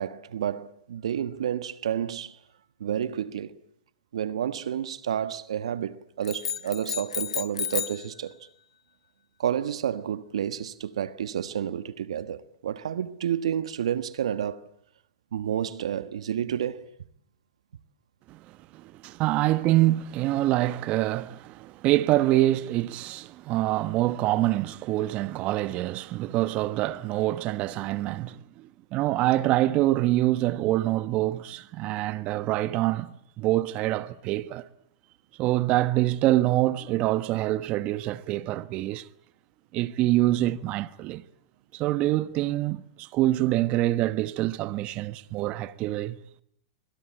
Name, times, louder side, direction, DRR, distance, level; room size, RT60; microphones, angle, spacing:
voice 1, 0.0-2.4 2.8-3.5 4.1-8.4 9.4-14.6 15.3-16.8, right 9 dB, 75° right, 1.3 m, -30 dB
sound 1, 6.2-8.1, left 8 dB, 85° left, 1.2 m, -32 dB
voice 2, 18.7-34.7 35.4-39.1 39.7-41.2 41.7-46.2, right 16 dB, 40° right, 1.2 m, -25 dB
25.0 x 25.0 x 8.8 m
hypercardioid pair, 115°, 3 cm